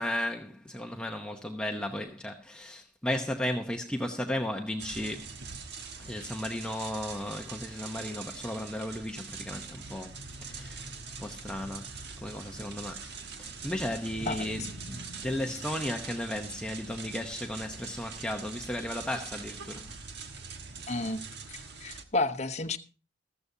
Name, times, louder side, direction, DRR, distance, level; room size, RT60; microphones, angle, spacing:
voice 1, 0.0-5.3 6.0-10.1 10.4-10.9 11.2-11.9 12.2-13.1 13.4-19.9, left 1 dB, 5° left, 0.8 m, -35 dB
sound 1, 4.8-22.0, right 4 dB, 65° right, 1.4 m, -43 dB
voice 2, 20.9-21.2 21.5-22.8, left 2 dB, 40° left, 0.9 m, -31 dB
15.0 x 14.0 x 2.7 m
head